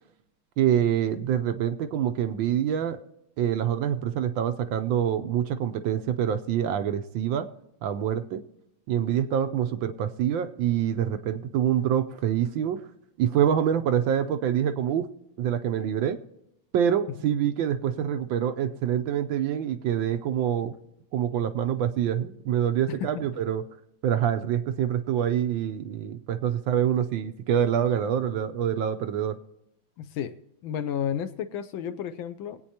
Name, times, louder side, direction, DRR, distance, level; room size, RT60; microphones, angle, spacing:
voice 1, 0.6-3.0 3.4-7.5 7.8-8.4 8.9-12.8 13.2-15.1 15.4-16.2 16.7-20.7 21.1-23.6 24.0-29.4, right 9 dB, 75° right, 9 dB, 1.3 m, -26 dB
voice 2, 30.0-30.4 30.6-32.6, left 9 dB, 75° left, 12 dB, 1.3 m, -32 dB
21.5 x 8.7 x 2.8 m, 0.80 s
omnidirectional pair, 2.4 m